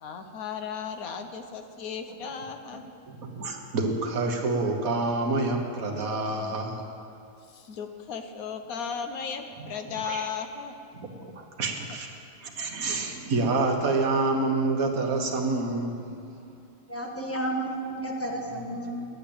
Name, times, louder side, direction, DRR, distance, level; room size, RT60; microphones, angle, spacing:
voice 1, 0.0-2.8 7.5-10.7, left 6 dB, 80° left, 7 dB, 1.3 m, -35 dB
voice 2, 3.1-6.8 10.0-10.3 10.9-12.1 12.4-16.1 18.7-19.1, right 3 dB, 80° right, 2 dB, 1.7 m, -28 dB
voice 3, 16.9-19.1, right 1 dB, 10° left, -1 dB, 1.3 m, -32 dB
10.5 x 8.8 x 8.6 m, 2.6 s
omnidirectional pair, 1.5 m